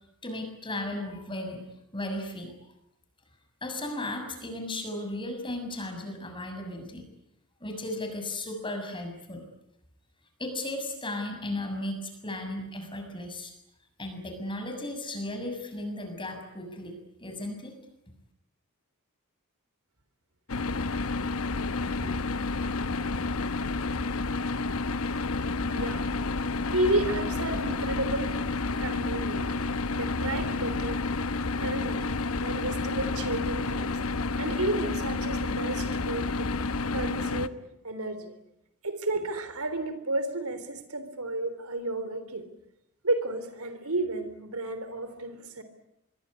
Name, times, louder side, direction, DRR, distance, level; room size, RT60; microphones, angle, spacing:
voice 1, 0.2-1.6 1.9-2.5 3.6-7.0 7.6-9.4 10.4-13.5 14.0-16.9 17.2-17.7, left 1 dB, 20° left, 5 dB, 6.8 m, -35 dB
sound 1, 20.5-37.5, left 3 dB, 70° left, 1.0 m, -30 dB
voice 2, 25.6-26.1 26.7-28.4 28.7-31.0 31.6-32.1 32.4-34.0 34.4-36.5 36.9-38.3 38.8-42.4 43.0-45.6, right 2 dB, 80° right, 11 dB, 3.6 m, -32 dB
25.0 x 23.0 x 9.8 m, 0.82 s
head